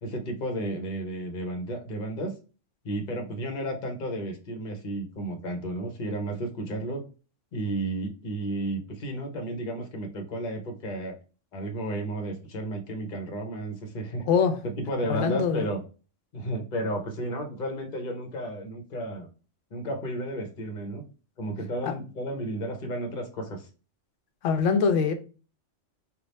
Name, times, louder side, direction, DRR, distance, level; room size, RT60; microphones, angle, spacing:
voice 1, 0.0-2.3 2.8-7.0 7.5-11.1 11.5-14.2 14.6-15.8 16.3-19.3 19.7-21.0 21.4-23.7, right 1 dB, 45° left, 0.9 m, -32 dB
voice 2, 15.1-15.6 21.8-21.9 24.4-25.1, left 6 dB, 80° left, 1.0 m, -23 dB
3.4 x 2.4 x 4.0 m
omnidirectional pair, 1.3 m